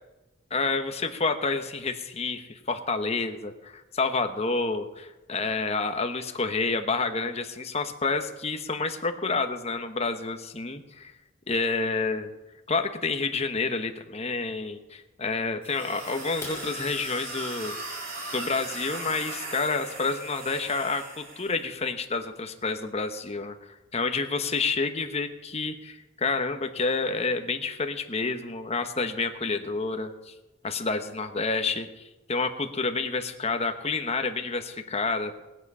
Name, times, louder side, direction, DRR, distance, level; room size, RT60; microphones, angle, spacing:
voice 1, 0.5-11.1 11.5-12.3 12.7-17.8 18.3-23.5 23.9-30.3 30.6-35.3, left 4 dB, 30° left, 7 dB, 1.0 m, -29 dB
sound 1, 15.6-21.6, right 2 dB, 45° right, 3.2 m, -38 dB
sound 2, 16.3-20.1 20.6-20.8 21.2-21.3 21.8-21.9 22.2-22.3 22.8-22.9 23.1-23.6, left 2 dB, 10° left, 3.0 m, -47 dB
19.0 x 8.4 x 5.5 m, 1.0 s
head